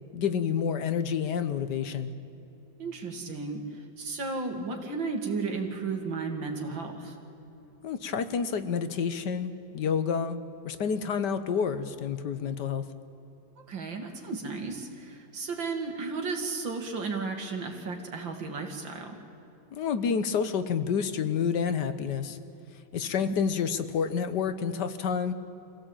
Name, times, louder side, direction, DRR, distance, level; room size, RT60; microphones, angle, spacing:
voice 1, 0.1-2.1 7.8-10.4 10.6-12.8 19.7-22.4 22.9-25.3, left 6 dB, 65° left, 11 dB, 1.6 m, -29 dB
voice 2, 2.8-7.2 13.6-19.2 23.0-23.3, right 4 dB, 90° right, 3 dB, 3.1 m, -34 dB
25.0 x 16.5 x 8.9 m, 3.0 s
omnidirectional pair, 2.0 m